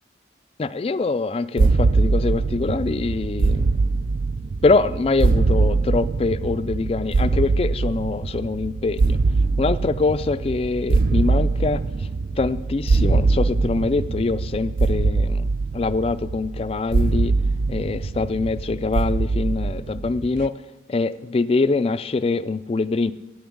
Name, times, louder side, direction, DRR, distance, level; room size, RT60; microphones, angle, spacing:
voice 1, 0.6-3.8 4.6-9.2 9.6-11.8 12.4-15.5 15.7-17.4 17.7-20.5 20.9-23.1, left 3 dB, 35° left, 14 dB, 0.3 m, -24 dB
sound 1, 1.6-20.5, right 3 dB, 50° right, 0.3 m, -22 dB
8.7 x 7.0 x 7.6 m, 1.0 s
head